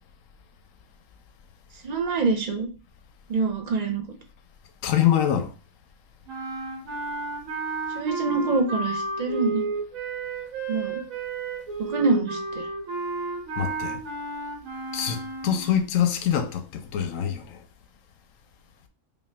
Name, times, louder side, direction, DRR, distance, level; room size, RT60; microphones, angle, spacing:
voice 1, 1.8-2.7 3.3-4.0 7.9-9.7 10.7-11.0 11.8-12.7, right 4 dB, 45° right, 0.6 m, -25 dB
voice 2, 4.8-5.5 13.6-14.0 14.9-17.6, left 9 dB, 90° left, 1.0 m, -24 dB
sound 1, 6.3-15.8, right 3 dB, 90° right, 1.5 m, -32 dB
5.2 x 2.6 x 2.3 m
omnidirectional pair, 1.4 m